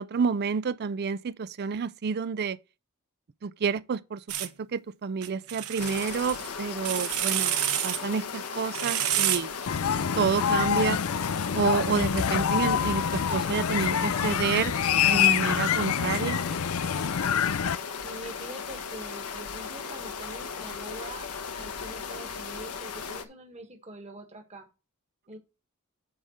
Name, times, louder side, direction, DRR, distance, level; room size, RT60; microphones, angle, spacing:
voice 1, 0.0-2.6 3.4-7.5 7.8-9.5 10.2-11.0 11.5-14.7 15.1-16.4, right 5 dB, 45° right, 0.4 m, -29 dB
sound 1, 4.3-4.5 5.2-6.5 6.8-8.0 8.7-9.4, right 12 dB, 75° right, 0.9 m, -28 dB
sound 2, 5.8-23.2, left 6 dB, 90° left, 1.2 m, -37 dB
sound 3, 9.7-17.8, left 8 dB, 70° left, 0.5 m, -26 dB
voice 2, 18.0-21.3 21.5-24.7 25.3-25.4, right 1 dB, 30° right, 1.6 m, -44 dB
9.5 x 3.6 x 6.4 m
head